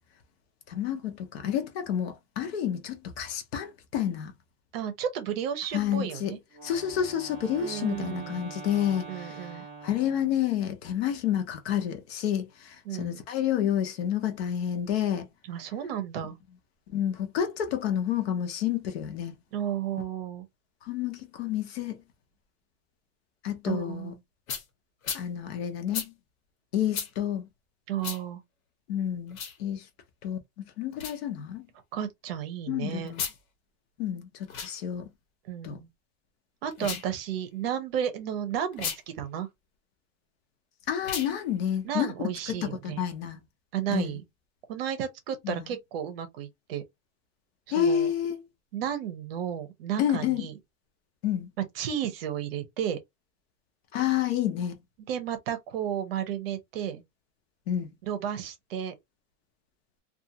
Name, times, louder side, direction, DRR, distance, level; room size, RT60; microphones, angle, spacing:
voice 1, 0.7-4.3 5.7-6.3 6.6-9.3 9.8-15.3 16.9-19.4 20.9-22.0 23.4-24.1 25.1-26.1 26.7-27.4 28.9-29.8 30.2-31.7 32.7-33.2 34.0-34.3 34.6-35.1 35.6-35.8 36.8-36.9 40.9-42.1 42.5-43.4 43.9-44.1 45.4-45.6 47.7-48.4 50.0-50.5 51.2-51.5 53.9-54.8 57.7-57.9, left 10 dB, 50° left, 0.7 m, -29 dB
voice 2, 4.7-6.4 7.6-8.5 9.1-9.6 12.9-13.2 15.5-16.4 19.5-20.5 23.6-24.2 27.9-28.4 31.9-33.1 35.4-35.9 36.6-39.5 41.8-43.0 43.7-44.2 44.7-46.8 47.8-48.1 48.7-50.5 51.6-53.0 55.1-57.0 58.0-58.9, right 9 dB, 45° right, 0.7 m, -33 dB
Wind instrument woodwind instrument, 6.5-10.6, right 4 dB, 5° right, 0.3 m, -44 dB
sound 1, 24.5-24.6 25.0-25.2 25.9-26.1 26.9-27.1 28.0-28.2 29.3-29.6 30.9-31.2 33.1-33.4 34.4-34.7 36.7-37.1 38.7-39.0 41.0-41.3, left 7 dB, 85° left, 1.2 m, -34 dB
2.5 x 2.4 x 2.7 m
supercardioid pair, 180°, 40 cm